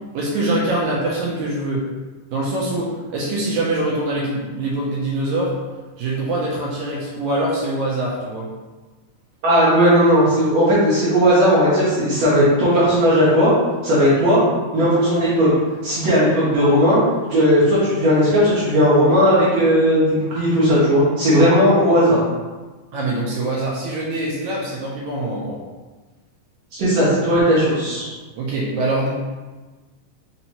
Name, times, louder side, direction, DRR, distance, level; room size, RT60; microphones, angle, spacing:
voice 1, 0.1-1.9 2.3-5.5 6.0-8.5 22.9-25.6 28.3-29.1, right 2 dB, 80° right, -4 dB, 1.8 m, -24 dB
voice 2, 9.4-13.5 13.8-14.4 14.7-15.5 15.8-17.0 17.3-22.2 26.7-28.1, equal, 60° right, -10 dB, 2.0 m, -16 dB
5.3 x 2.8 x 2.9 m, 1.3 s
omnidirectional pair, 3.9 m